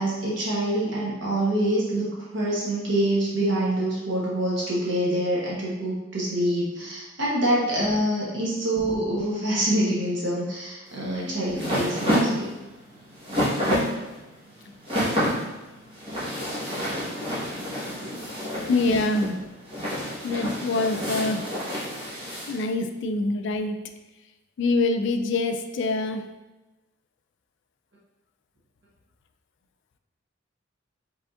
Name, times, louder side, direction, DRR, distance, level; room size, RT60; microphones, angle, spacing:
voice 1, 0.0-12.6, right 1 dB, 60° right, -6 dB, 1.0 m, -26 dB
sound 1, 10.9-22.6, equal, 25° right, 1.3 m, -29 dB
voice 2, 18.7-19.4 20.2-21.5 22.5-23.8 24.6-26.2, left 2 dB, 60° left, 7 dB, 0.3 m, -25 dB
4.9 x 3.5 x 2.5 m, 1.1 s
head